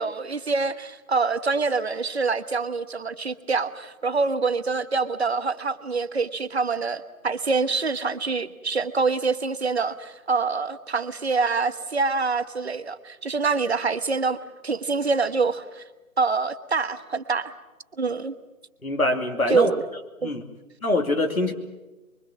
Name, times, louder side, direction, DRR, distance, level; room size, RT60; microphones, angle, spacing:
voice 1, 0.0-14.4 14.6-15.8 16.2-17.5 18.0-18.3 19.5-19.8 20.2-20.3, right 4 dB, 45° right, 12 dB, 1.3 m, -25 dB
voice 2, 18.8-19.7 20.2-20.4 20.8-21.5, left 1 dB, 70° left, 2 dB, 2.9 m, -24 dB
25.0 x 23.5 x 7.6 m, 1.1 s
figure-of-eight pair, 155°, 44 cm